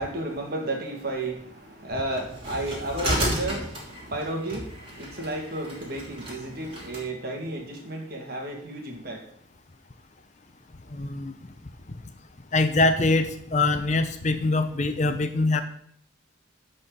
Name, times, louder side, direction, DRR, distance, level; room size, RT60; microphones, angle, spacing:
voice 1, 0.0-9.3, right 1 dB, 50° right, 2 dB, 2.0 m, -32 dB
sound 1, 2.1-7.0, equal, 30° right, 2.9 m, -33 dB
voice 2, 10.9-11.3 12.5-15.6, left 2 dB, 35° left, 9 dB, 0.7 m, -23 dB
11.0 x 4.4 x 6.5 m, 0.65 s
head